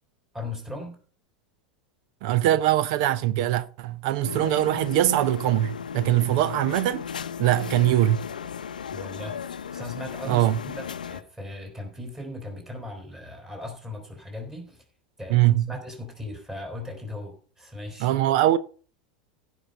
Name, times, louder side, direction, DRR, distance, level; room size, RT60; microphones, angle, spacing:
voice 1, 0.3-1.0 8.9-9.4 9.7-14.8 15.2-18.1, left 2 dB, 10° right, 4.0 m, -38 dB
voice 2, 2.2-7.0 7.4-8.2 10.3-10.6 15.3-15.7 18.0-18.6, right 14 dB, 55° right, 0.6 m, -22 dB
sound 1, 4.2-11.2, left 7 dB, 80° left, 0.6 m, -35 dB
15.5 x 5.6 x 5.3 m
hypercardioid pair, 90°, 4 cm